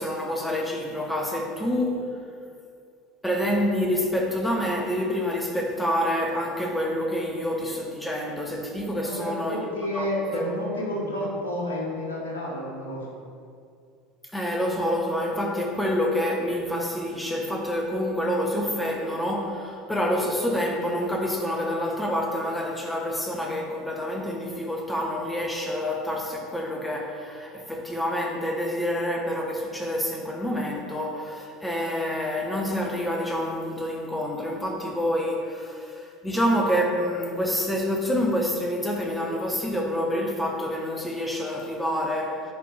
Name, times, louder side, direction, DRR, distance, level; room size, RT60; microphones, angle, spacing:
voice 1, 0.0-2.0 3.2-10.5 14.3-42.4, equal, 5° left, 0 dB, 1.3 m, -27 dB
voice 2, 8.9-13.1, left 1 dB, 75° left, -3 dB, 1.4 m, -30 dB
10.0 x 4.9 x 3.6 m, 2.3 s
figure-of-eight pair, 70°, 0 cm